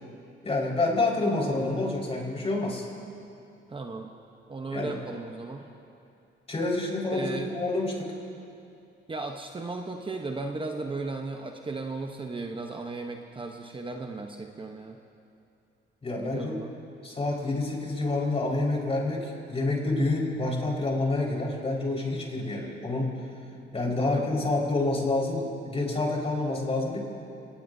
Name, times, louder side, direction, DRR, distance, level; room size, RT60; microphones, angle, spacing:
voice 1, 0.4-2.8 4.7-5.0 6.5-8.1 16.0-16.5 17.0-23.2 23.7-27.0, left 2 dB, 30° left, -2 dB, 4.9 m, -28 dB
voice 2, 3.7-4.1 4.5-5.6 7.1-7.5 9.1-15.0 16.2-16.7 23.9-24.2, right 3 dB, 25° right, 3 dB, 1.0 m, -36 dB
26.0 x 20.0 x 2.7 m, 2.7 s
cardioid pair, 90°, 20 cm